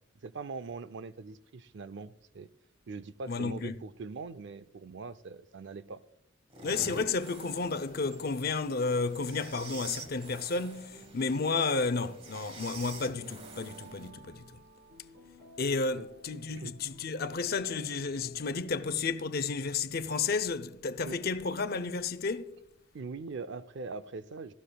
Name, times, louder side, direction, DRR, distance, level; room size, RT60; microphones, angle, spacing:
voice 1, 0.2-2.5 2.9-6.0 16.0-16.1 16.5-16.8 21.1-21.2 22.9-24.5, right 4 dB, 60° right, 0.5 m, -42 dB
voice 2, 3.3-3.8 6.6-14.6 15.6-22.6, left 4 dB, 50° left, 0.6 m, -32 dB
sound 1, 6.5-14.1, right 3 dB, 30° right, 1.3 m, -48 dB
sound 2, 7.5-19.1, equal, 80° right, 1.7 m, -54 dB
16.5 x 14.0 x 2.3 m
head